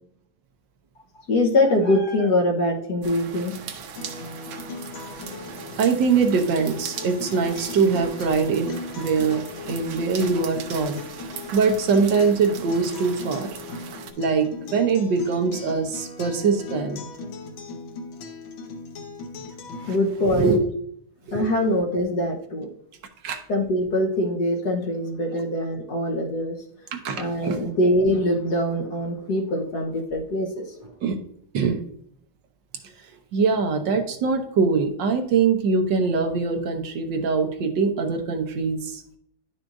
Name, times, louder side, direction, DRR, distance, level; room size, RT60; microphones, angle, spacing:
voice 1, 1.3-3.6 19.9-20.5 21.3-22.7 23.5-26.6 27.2-30.7, left 1 dB, 60° left, 2 dB, 1.6 m, -23 dB
sound 1, 3.0-14.1, right 7 dB, 90° right, 1.6 m, -39 dB
Acoustic guitar, 4.0-20.0, left 3 dB, 85° left, 1.7 m, -38 dB
voice 2, 5.8-11.0 11.5-13.6 14.2-17.1 19.8-20.0 20.3-20.6 21.3-21.5 23.2-23.4 26.9-27.7 31.0-31.2 31.5-31.8 33.3-39.2, right 5 dB, 70° right, 5 dB, 1.5 m, -23 dB
10.5 x 6.1 x 2.6 m, 0.69 s
omnidirectional pair, 2.1 m